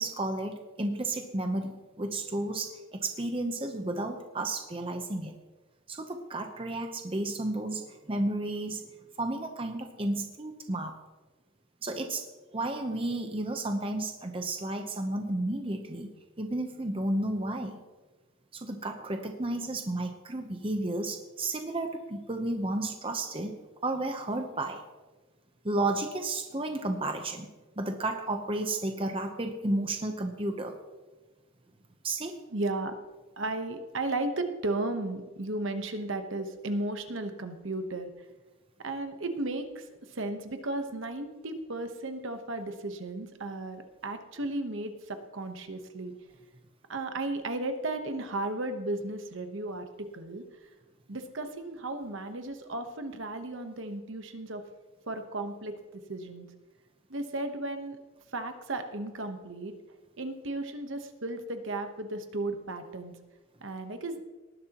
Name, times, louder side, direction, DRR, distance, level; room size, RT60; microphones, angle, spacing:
voice 1, 0.0-5.3 5.9-8.9 9.2-10.9 11.8-12.2 12.5-16.1 16.4-17.8 18.5-24.8 25.6-27.5 27.8-30.7 32.0-32.4, right 2 dB, 25° right, 5 dB, 0.8 m, -32 dB
voice 2, 32.5-32.9 33.4-38.1 38.8-46.1 46.9-50.4 51.1-54.6 55.1-56.5 57.1-58.0 58.3-59.7 60.2-63.1 63.6-64.2, right 2 dB, 60° right, 7 dB, 1.1 m, -35 dB
18.5 x 11.0 x 3.0 m, 1.2 s
head